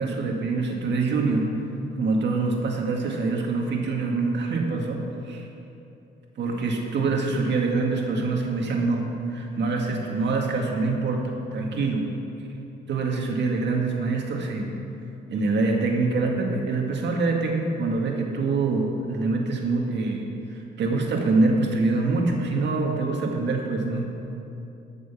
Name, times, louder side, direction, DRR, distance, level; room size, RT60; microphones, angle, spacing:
voice 1, 0.0-1.5 2.0-5.5 6.4-12.1 12.9-14.7 15.3-24.1, right 3 dB, 65° right, 1 dB, 1.8 m, -25 dB
14.0 x 6.3 x 5.8 m, 2.7 s
cardioid pair, 90°, 20 cm